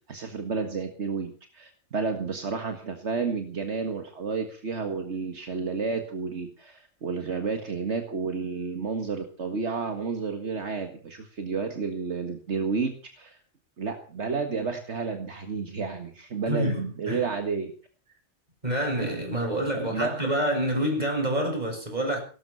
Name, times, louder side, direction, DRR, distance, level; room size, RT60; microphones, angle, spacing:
voice 1, 0.1-13.4 13.8-17.7 19.8-20.1, right 4 dB, 70° right, 2.0 m, -31 dB
voice 2, 16.5-17.3 18.6-22.2, right 1 dB, 35° right, 7.2 m, -27 dB
18.5 x 13.0 x 5.7 m
omnidirectional pair, 1.2 m